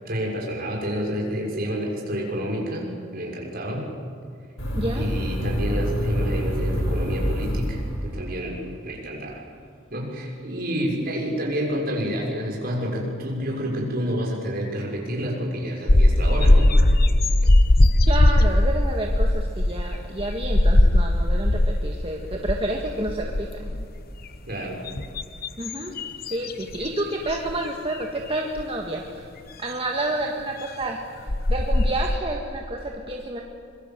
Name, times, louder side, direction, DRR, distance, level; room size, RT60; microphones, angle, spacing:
voice 1, 0.0-3.9 5.0-9.4 9.9-16.7 24.5-24.8, equal, 45° right, -1 dB, 6.1 m, -29 dB
sound 1, 4.6-8.3, equal, 70° left, 6.4 m, -26 dB
voice 2, 4.8-5.1 18.1-23.9 25.6-25.9 26.3-29.3 29.6-31.0 31.5-33.4, right 1 dB, 25° right, 1 dB, 1.7 m, -29 dB
sound 2, 15.9-21.9 22.3-22.7 23.0-24.0 24.6-26.9 27.3-27.5 28.6-28.7 30.8-30.9 31.3-32.2, left 1 dB, 45° left, 1.0 m, -19 dB
25.0 x 23.5 x 7.5 m, 2.4 s
head